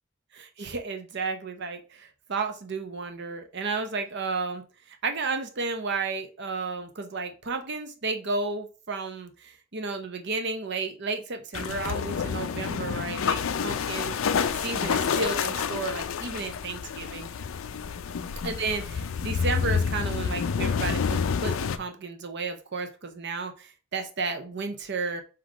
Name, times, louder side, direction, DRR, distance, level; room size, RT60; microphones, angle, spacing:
voice 1, 0.3-4.6 4.9-14.2 14.5-17.3 18.4-25.2, right 4 dB, 55° right, 6 dB, 0.7 m, -32 dB
sound 1, 11.5-21.8, left 6 dB, 70° left, 0.4 m, -28 dB
3.6 x 3.0 x 4.8 m, 0.35 s
head